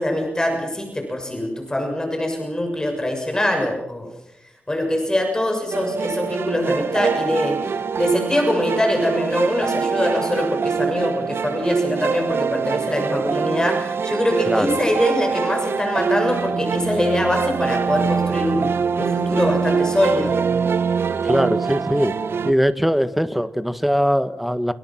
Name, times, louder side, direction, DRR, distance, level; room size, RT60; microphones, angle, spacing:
voice 1, 0.0-4.1 4.7-7.6 8.0-20.4, left 1 dB, 15° left, 3 dB, 6.7 m, -23 dB
sound 1, 5.7-22.5, right 6 dB, 75° right, 1.1 m, -23 dB
voice 2, 14.5-14.8 21.2-22.2 22.4-24.7, equal, ahead, 11 dB, 1.8 m, -21 dB
29.0 x 28.0 x 6.0 m, 0.86 s
wide cardioid pair, 100°, 4 cm